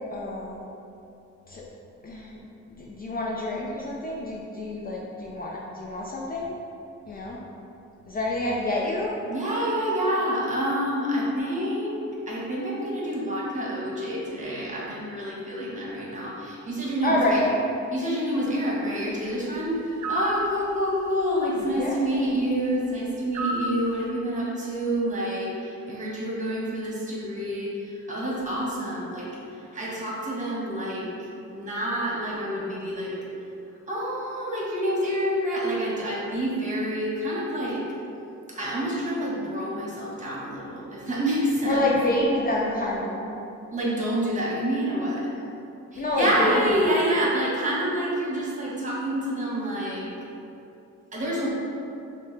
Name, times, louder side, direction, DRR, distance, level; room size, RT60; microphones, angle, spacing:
voice 1, 0.1-0.6 1.5-1.7 2.0-2.4 2.8-6.5 7.1-7.4 8.1-9.1 17.0-17.4 21.8-21.9 41.7-43.4 46.0-46.5 46.8-46.9, left 1 dB, 30° left, -3 dB, 0.5 m, -27 dB
voice 2, 9.3-17.4 17.9-33.2 33.9-37.8 38.5-41.9 43.7-45.4 45.9-50.1 51.1-51.5, equal, 25° right, -5 dB, 1.2 m, -28 dB
sound 1, 20.0-20.4 23.3-23.8, right 1 dB, 70° right, 0.6 m, -28 dB
6.1 x 2.2 x 3.2 m, 2.7 s
cardioid pair, 90°, 30 cm